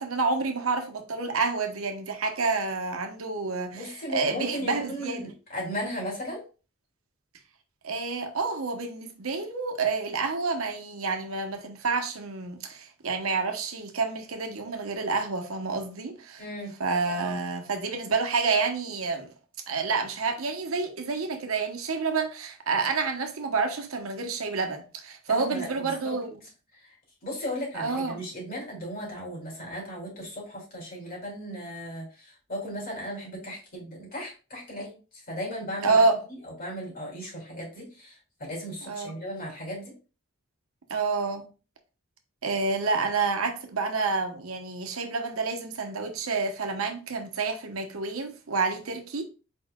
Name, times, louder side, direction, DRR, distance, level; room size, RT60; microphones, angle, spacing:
voice 1, 0.0-5.3 7.8-16.4 16.8-19.3 19.7-26.3 27.7-28.2 35.8-36.2 38.9-39.2 40.9-41.4 42.4-49.2, right 4 dB, 80° right, 0.9 m, -28 dB
voice 2, 3.7-6.4 16.4-16.7 25.3-26.2 26.7-26.9 27.2-36.0 36.4-39.9, equal, 45° left, 2.7 m, -36 dB
4.6 x 4.6 x 2.2 m
head